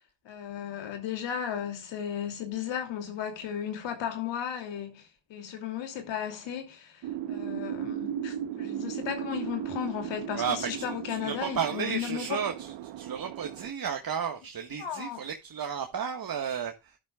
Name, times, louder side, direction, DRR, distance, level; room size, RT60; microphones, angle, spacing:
voice 1, 0.2-7.0 7.3-12.4 14.8-15.2, left 9 dB, 85° left, 2.8 m, -35 dB
sound 1, 7.0-13.7, right 10 dB, 80° right, 1.0 m, -37 dB
voice 2, 10.3-17.0, right 7 dB, 55° right, 1.6 m, -33 dB
12.0 x 10.5 x 2.4 m
supercardioid pair, 55°, 43 cm